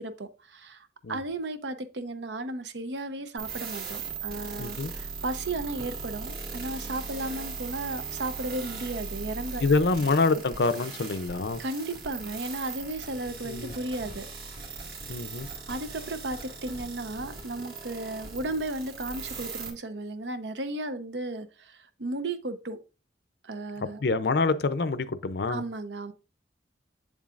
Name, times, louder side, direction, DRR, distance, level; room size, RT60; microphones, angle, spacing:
voice 1, 0.0-9.6 11.6-14.3 15.7-22.8 23.4-24.0 25.5-26.1, right 2 dB, 75° right, 0.8 m, -34 dB
sound 1, 3.4-19.7, right 5 dB, 55° right, 1.8 m, -39 dB
voice 2, 4.6-4.9 9.6-11.6 13.4-13.7 15.1-15.5 23.8-25.6, left 3 dB, 65° left, 0.6 m, -26 dB
8.2 x 7.2 x 2.5 m
head